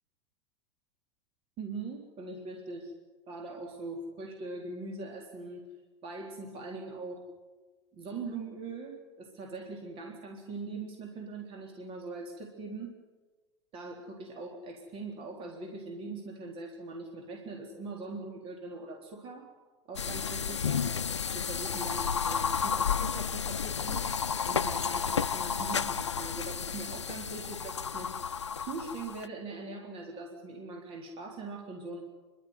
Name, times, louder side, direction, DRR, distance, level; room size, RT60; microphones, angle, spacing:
voice 1, 1.6-2.9 3.3-5.7 6.0-7.3 7.9-13.0 13.7-19.5 19.9-20.9 21.3-32.0, right 3 dB, 40° right, 2 dB, 3.8 m, -41 dB
sound 1, 20.0-29.3, left 6 dB, 85° left, 0.7 m, -32 dB
30.0 x 12.5 x 9.7 m, 1.3 s
hypercardioid pair, 90°, 15 cm